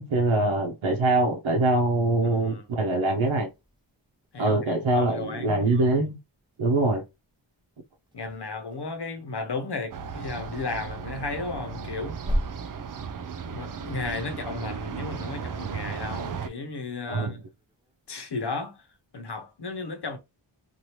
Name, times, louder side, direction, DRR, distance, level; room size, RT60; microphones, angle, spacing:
voice 1, 0.0-3.5 4.4-6.2 6.6-7.0 17.1-17.4, right 2 dB, 80° right, 0.8 m, -23 dB
sound 1, 2.2-19.1, equal, 10° right, 0.8 m, -41 dB
voice 2, 4.3-5.8 8.1-12.3 13.5-17.4 18.1-18.8 19.1-20.2, left 3 dB, 55° left, 1.0 m, -34 dB
sound 2, 9.9-16.5, right 6 dB, 45° right, 0.4 m, -35 dB
2.8 x 2.6 x 3.1 m
wide cardioid pair, 65°, 47 cm